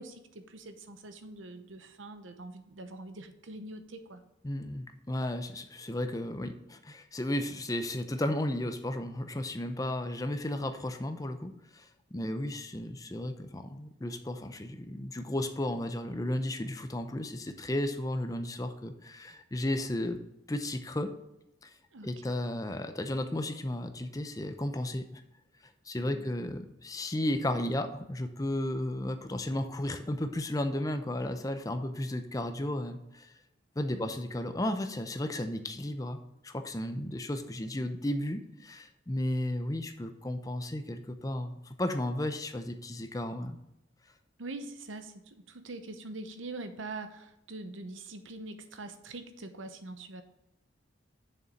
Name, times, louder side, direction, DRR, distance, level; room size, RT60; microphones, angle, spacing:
voice 1, 0.0-4.2 21.9-22.3 33.9-34.1 44.4-50.2, right 2 dB, 85° right, 8 dB, 0.9 m, -44 dB
voice 2, 4.4-20.2 20.5-21.1 21.6-21.7 22.0-25.2 25.9-33.3 33.8-43.6, left 1 dB, 20° left, 8 dB, 0.6 m, -34 dB
7.1 x 6.6 x 5.1 m, 0.89 s
head